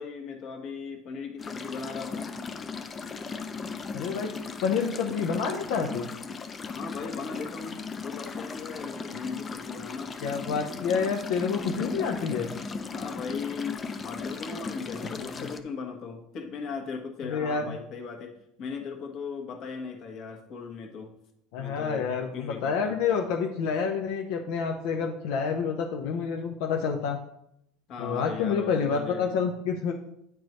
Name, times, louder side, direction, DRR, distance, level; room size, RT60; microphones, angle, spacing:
voice 1, 0.0-2.3 6.7-10.1 12.9-21.1 21.6-23.0 27.9-29.4, left 5 dB, 45° left, 3 dB, 1.2 m, -38 dB
sound 1, 1.4-15.6, left 4 dB, 20° left, 0.5 m, -37 dB
voice 2, 3.9-4.3 4.6-6.1 10.2-12.5 15.2-15.3 17.2-17.8 21.5-27.2 28.0-29.9, left 6 dB, 75° left, 2 dB, 0.7 m, -28 dB
9.2 x 4.6 x 3.1 m, 0.77 s
cardioid pair, 140°, 0 cm